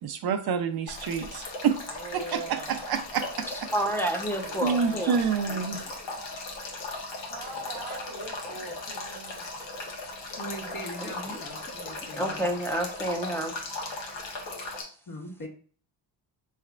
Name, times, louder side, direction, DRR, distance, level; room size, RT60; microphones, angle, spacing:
voice 1, 0.0-1.8 2.1-3.7 4.6-5.8, right 6 dB, 55° right, 7 dB, 0.6 m, -28 dB
Male speech man speaking / Stream / Trickle dribble, 0.9-14.8, left 2 dB, 75° left, 1.3 m, -38 dB
voice 2, 1.9-2.8 4.4-5.3 7.3-9.5 10.6-10.8, right 3 dB, 80° right, 4 dB, 1.2 m, -40 dB
voice 3, 3.5-5.2 11.0-11.4 12.2-13.5, right 1 dB, 5° left, 4 dB, 0.8 m, -30 dB
voice 4, 10.4-12.5 15.1-15.5, equal, 50° left, 0 dB, 1.6 m, -41 dB
5.5 x 3.3 x 2.4 m, 0.43 s
cardioid pair, 85°, 44 cm